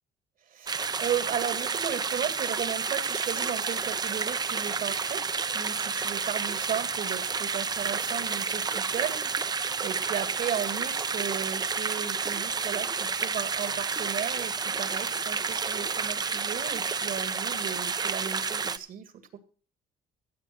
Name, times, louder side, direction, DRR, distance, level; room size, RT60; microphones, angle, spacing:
voice 1, 0.5-5.2 5.5-19.4, right 9 dB, 55° right, 11 dB, 2.1 m, -35 dB
sound 1, 0.7-18.8, right 5 dB, 25° right, 0.6 m, -30 dB
15.5 x 7.3 x 5.8 m, 0.39 s
cardioid pair, 110°, 17 cm